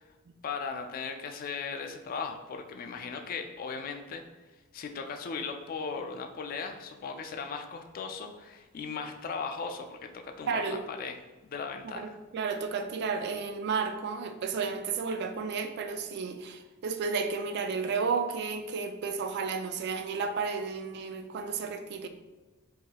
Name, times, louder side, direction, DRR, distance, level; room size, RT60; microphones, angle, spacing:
voice 1, 0.4-4.2 4.7-12.2, left 5 dB, 45° left, 5 dB, 0.3 m, -37 dB
voice 2, 10.5-10.8 11.9-22.1, right 5 dB, 55° right, 7 dB, 0.3 m, -32 dB
4.6 x 2.8 x 2.2 m, 1.2 s
head